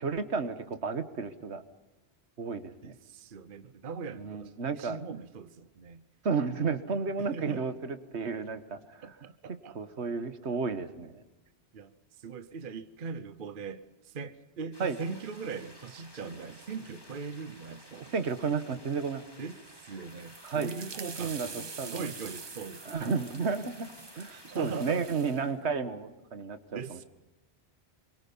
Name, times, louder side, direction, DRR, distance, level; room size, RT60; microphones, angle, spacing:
voice 1, 0.0-1.6 2.4-2.9 4.2-5.0 6.2-9.1 9.7-11.2 14.8-15.0 18.0-19.3 20.4-20.7 21.2-22.1 22.9-23.9 24.2-27.0, right 5 dB, 80° right, 1.6 m, -32 dB
voice 2, 2.8-6.0 7.2-7.6 9.0-9.8 11.7-11.9 12.2-18.1 19.4-23.1 24.3-25.1 26.7-27.0, right 5 dB, 55° right, 1.0 m, -40 dB
sound 1, 14.7-24.9, left 1 dB, 20° left, 2.6 m, -54 dB
sound 2, 20.0-25.5, right 4 dB, 25° right, 0.7 m, -46 dB
26.0 x 23.5 x 5.5 m
omnidirectional pair, 1.1 m